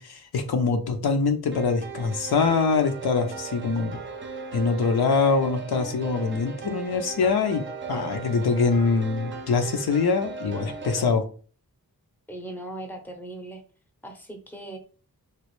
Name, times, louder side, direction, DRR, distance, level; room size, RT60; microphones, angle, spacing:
voice 1, 0.0-4.0 4.5-11.2, left 4 dB, 75° left, 5 dB, 0.6 m, -24 dB
sound 1, 1.5-11.1, right 5 dB, 30° right, 0.5 m, -37 dB
voice 2, 12.3-13.6 14.0-14.8, right 1 dB, 5° left, 4 dB, 0.7 m, -38 dB
3.1 x 2.4 x 3.0 m, 0.39 s
wide cardioid pair, 75°, 38 cm